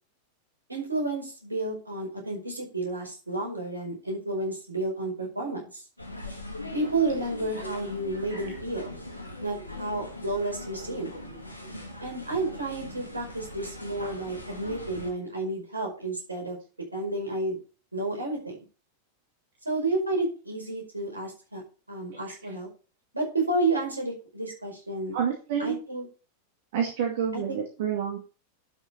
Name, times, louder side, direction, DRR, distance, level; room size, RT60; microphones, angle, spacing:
voice 1, 0.7-5.8 6.7-8.9 9.4-11.1 12.0-16.6 16.9-17.6 17.9-18.6 19.6-21.6 21.9-22.7 23.1-25.2 25.6-26.0 27.3-27.6, right 2 dB, 80° right, 0 dB, 5.0 m, -31 dB
sound 1, 6.0-15.1, left 1 dB, 85° left, 3.0 m, -40 dB
voice 2, 25.1-25.8 26.7-28.2, right 8 dB, 55° right, 1 dB, 2.2 m, -29 dB
11.5 x 6.2 x 4.3 m, 0.35 s
figure-of-eight pair, 90°, 0 cm